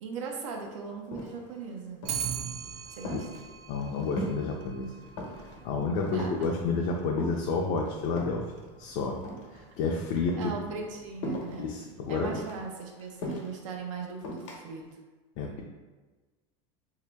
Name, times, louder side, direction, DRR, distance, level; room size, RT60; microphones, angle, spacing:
voice 1, 0.0-2.2 2.9-3.3 6.1-6.5 9.5-9.7 10.4-11.7 12.1-14.8, right 5 dB, 90° right, 1 dB, 0.7 m, -39 dB
sound 1, 0.6-0.7 1.0-1.6 2.0-2.4 2.8-4.5 4.8-5.6 5.9-6.6 7.2-8.5 9.1-9.9 10.2-10.5 11.2-11.7 12.2-13.6 14.2-14.6, left 1 dB, 90° left, 0.9 m, -38 dB
Clock, 2.0-11.4, right 7 dB, 55° right, 0.4 m, -42 dB
voice 2, 3.7-4.9 5.6-8.4 8.8-9.2 9.8-10.5 11.6-12.3 15.4-15.6, left 4 dB, 50° left, 0 dB, 0.4 m, -30 dB
2.9 x 2.8 x 3.4 m, 1.3 s
supercardioid pair, 150°, 16 cm